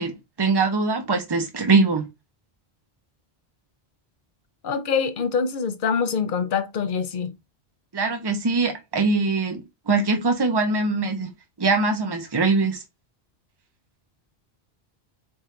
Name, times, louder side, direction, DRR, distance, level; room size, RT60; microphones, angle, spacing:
voice 1, 0.0-2.1 7.9-11.3 11.6-12.8, right 3 dB, 25° right, 0.7 m, -22 dB
voice 2, 4.6-7.3, left 6 dB, 60° left, 0.7 m, -25 dB
3.6 x 2.5 x 4.3 m
omnidirectional pair, 1.1 m